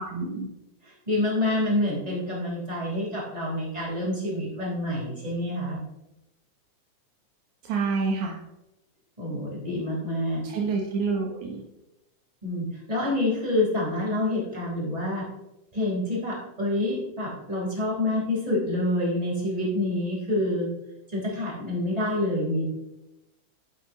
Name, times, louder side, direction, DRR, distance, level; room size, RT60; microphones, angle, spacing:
voice 1, 0.1-0.5 7.7-8.3 10.5-11.6, right 4 dB, 80° right, 0 dB, 2.6 m, -27 dB
voice 2, 0.8-5.8 9.2-10.4 12.4-15.2 15.7-20.7 21.1-22.6, left 1 dB, 10° right, -5 dB, 4.2 m, -27 dB
11.5 x 11.0 x 3.1 m, 0.92 s
omnidirectional pair, 3.4 m